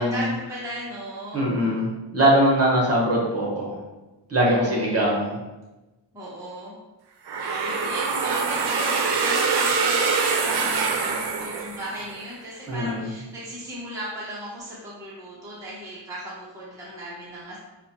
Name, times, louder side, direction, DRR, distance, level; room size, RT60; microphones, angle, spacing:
voice 1, 0.0-1.5 4.4-5.2 6.1-6.7 7.4-17.6, equal, 5° right, -8 dB, 0.6 m, -37 dB
voice 2, 1.3-3.8 4.3-5.4 12.7-13.1, right 1 dB, 35° right, -3 dB, 1.0 m, -22 dB
sound 1, 7.3-12.2, right 4 dB, 65° right, 0.5 m, -24 dB
5.5 x 2.1 x 2.8 m, 1.1 s
wide cardioid pair, 170°, 43 cm